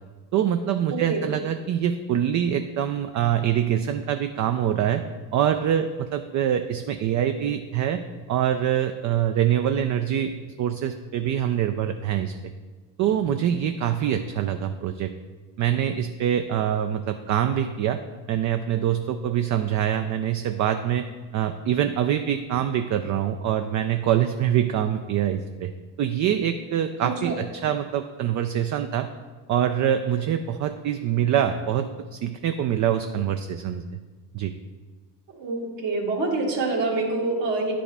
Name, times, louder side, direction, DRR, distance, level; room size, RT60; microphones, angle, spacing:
voice 1, 0.3-5.0 5.3-8.0 8.3-10.3 10.6-12.3 13.0-15.1 15.6-18.0 18.3-21.1 21.3-25.7 26.0-29.1 29.5-33.8 34.3-34.5, right 10 dB, 40° right, 8 dB, 0.4 m, -24 dB
voice 2, 0.9-1.2 27.2-27.4 35.3-37.7, right 3 dB, 60° right, -2 dB, 2.0 m, -26 dB
9.6 x 5.1 x 3.4 m, 1.3 s
supercardioid pair, 80°, 48 cm